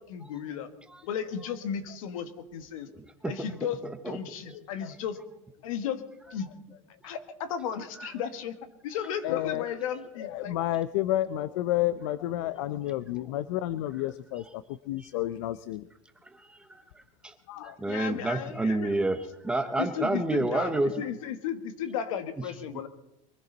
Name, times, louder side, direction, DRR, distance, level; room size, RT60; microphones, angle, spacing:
voice 1, 0.1-0.7 1.1-2.9 3.3-5.2 5.6-6.0 6.3-6.5 7.0-8.6 8.8-10.5 17.8-18.9 19.8-20.7 21.0-22.9, left 8 dB, 80° left, 10 dB, 1.7 m, -34 dB
voice 2, 9.2-9.7 10.2-15.9 17.5-17.8, left 14 dB, 60° left, 15 dB, 0.6 m, -30 dB
voice 3, 16.5-16.8 17.2-17.3 17.6-21.0, right 2 dB, 5° right, 8 dB, 0.7 m, -29 dB
23.0 x 15.0 x 4.0 m, 0.86 s
supercardioid pair, 170°, 17 cm